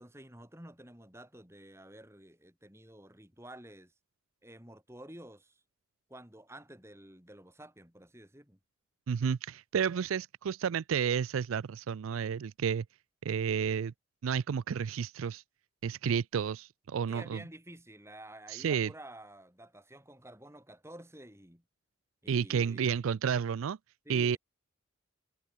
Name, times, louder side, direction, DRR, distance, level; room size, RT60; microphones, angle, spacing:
voice 1, 0.0-3.9 4.4-5.6 6.1-8.6 17.1-21.6 22.2-22.9 24.0-24.4, right 1 dB, 15° right, 5.0 m, -51 dB
voice 2, 9.1-12.9 13.2-13.9 14.2-15.4 15.8-17.4 18.5-18.9 22.3-23.8 24.1-24.4, right 7 dB, 85° right, 0.4 m, -31 dB
head